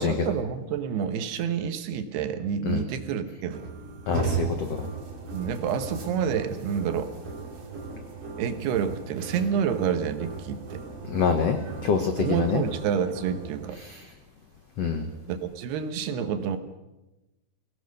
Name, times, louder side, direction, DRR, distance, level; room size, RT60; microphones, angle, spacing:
voice 1, 0.0-3.6 5.3-7.1 8.4-10.8 12.2-13.8 15.3-16.6, right 7 dB, 75° right, 9 dB, 3.2 m, -28 dB
sound 1, 3.5-13.7, right 4 dB, 40° right, 3.0 m, -37 dB
voice 2, 4.1-4.8 11.1-12.6 14.8-15.1, left 6 dB, 80° left, 6 dB, 1.4 m, -25 dB
23.0 x 17.5 x 6.5 m, 1.0 s
omnidirectional pair, 4.8 m